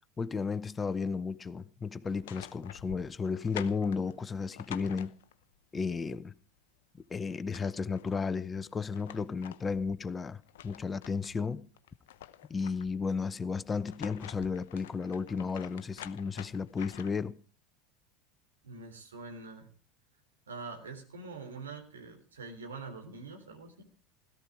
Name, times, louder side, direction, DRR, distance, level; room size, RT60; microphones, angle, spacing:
voice 1, 0.2-5.1 5.7-6.3 7.1-11.6 12.5-17.3, left 5 dB, 20° left, 0.9 m, -33 dB
sound 1, 2.0-5.6 7.0-7.1 7.3-8.2 8.7-11.4 11.8-13.1 13.7-17.3, left 12 dB, 65° left, 0.8 m, -48 dB
voice 2, 18.6-19.7 20.5-23.8, right 4 dB, 80° right, 3.6 m, -44 dB
17.0 x 13.0 x 5.0 m
figure-of-eight pair, 80°, 0 cm